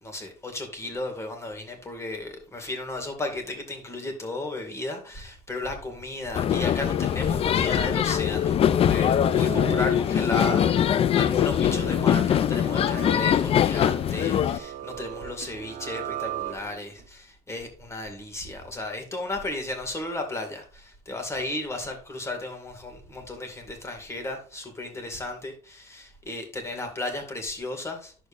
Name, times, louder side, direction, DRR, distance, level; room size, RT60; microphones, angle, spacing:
voice 1, 0.0-28.3, left 2 dB, 20° left, 2.1 m, -34 dB
sound 1, 6.3-14.6, left 9 dB, 40° left, 0.3 m, -22 dB
sound 2, 8.8-17.0, right 11 dB, 60° right, 1.0 m, -38 dB
10.5 x 7.1 x 2.6 m
cardioid pair, 140°, 15 cm